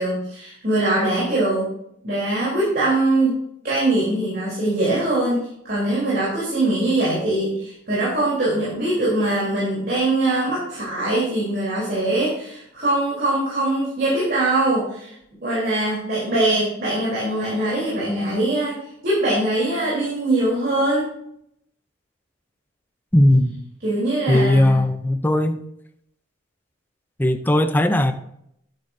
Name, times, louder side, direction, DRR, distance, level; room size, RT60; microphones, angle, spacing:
voice 1, 0.0-1.7 2.0-3.4 3.6-15.1 15.4-18.8 19.0-21.1 23.8-24.8, right 2 dB, 50° right, -8 dB, 3.5 m, -22 dB
voice 2, 23.1-23.6 24.3-25.6 27.2-28.1, left 1 dB, 10° left, 8 dB, 0.5 m, -18 dB
9.9 x 9.0 x 2.7 m, 0.74 s
head